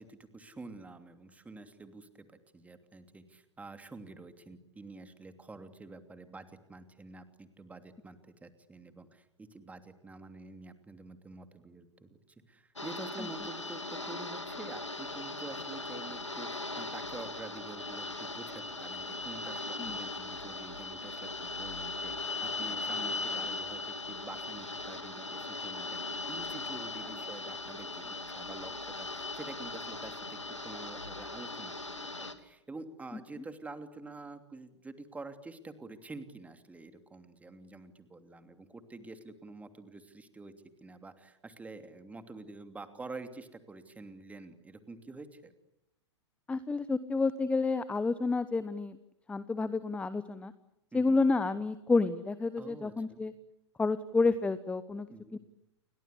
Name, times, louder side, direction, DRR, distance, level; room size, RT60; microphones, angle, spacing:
voice 1, 0.0-2.3 2.5-12.2 12.5-26.0 26.3-31.8 32.2-40.5 40.8-45.5 50.9-51.2 52.6-53.2 55.1-55.4, right 3 dB, 10° right, 9 dB, 2.9 m, -48 dB
sound 1, 12.8-32.3, left 3 dB, 85° left, 2.6 m, -39 dB
voice 2, 46.5-49.0 49.3-50.5 50.9-53.3 53.8-55.1 55.3-55.4, left 3 dB, 10° left, 15 dB, 1.0 m, -29 dB
29.5 x 23.5 x 8.4 m, 0.81 s
figure-of-eight pair, 100°, 15 cm